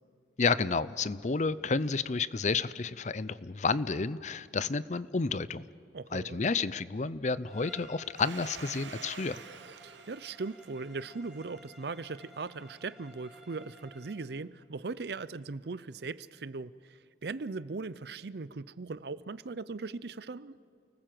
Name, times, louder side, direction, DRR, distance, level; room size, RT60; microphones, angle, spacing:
voice 1, 0.4-5.6 6.1-9.4, left 4 dB, 40° left, 17 dB, 0.5 m, -30 dB
voice 2, 5.9-6.4 9.8-20.6, right 3 dB, 60° right, 17 dB, 0.6 m, -39 dB
Bowed string instrument, 7.5-14.3, equal, 5° right, 4.2 m, -55 dB
Domestic sounds home sounds, 8.1-12.6, right 7 dB, 80° right, 0.9 m, -49 dB
29.5 x 19.5 x 7.7 m, 2.5 s
head